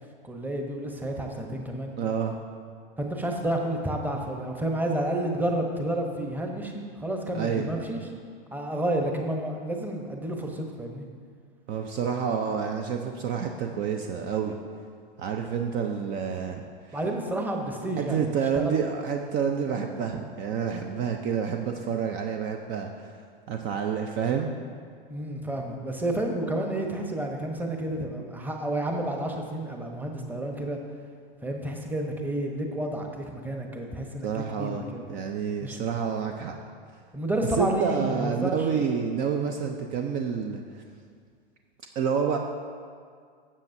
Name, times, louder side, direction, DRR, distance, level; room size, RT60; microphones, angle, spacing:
voice 1, 0.2-2.0 3.0-8.0 8.5-11.1 16.9-18.2 18.5-18.8 25.1-30.8 31.4-35.0 35.6-35.8 37.1-38.7, right 1 dB, 5° right, 2 dB, 1.0 m, -30 dB
voice 2, 2.0-2.4 7.3-7.7 11.7-14.6 15.2-16.6 16.9-17.0 18.0-23.2 23.5-24.5 34.2-34.8 35.1-36.5 37.6-40.8 42.0-42.4, right 7 dB, 40° right, 4 dB, 0.6 m, -28 dB
13.0 x 7.4 x 2.7 m, 2.1 s
hypercardioid pair, 100°, 29 cm